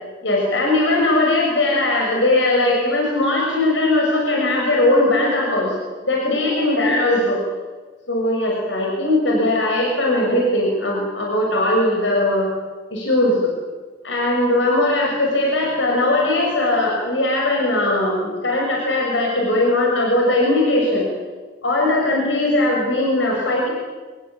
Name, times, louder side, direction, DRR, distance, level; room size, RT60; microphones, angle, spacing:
voice 1, 0.2-5.8 6.0-7.4 8.1-12.5 12.9-13.5 14.0-21.1 21.6-23.7, left 1 dB, 85° left, -1 dB, 6.6 m, -19 dB
26.0 x 20.5 x 8.9 m, 1.3 s
head